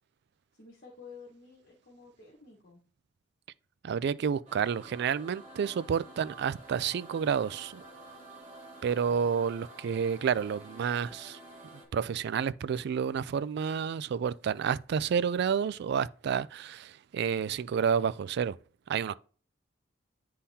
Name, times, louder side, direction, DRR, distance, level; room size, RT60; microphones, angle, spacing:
voice 1, 0.5-2.8, left 4 dB, 50° left, 1.4 m, -51 dB
voice 2, 3.8-7.8 8.8-11.4 11.7-18.6 18.9-19.2, right 7 dB, 60° right, 0.3 m, -30 dB
sound 1, 4.5-11.9, right 2 dB, 35° right, 2.1 m, -50 dB
9.8 x 3.7 x 2.8 m
head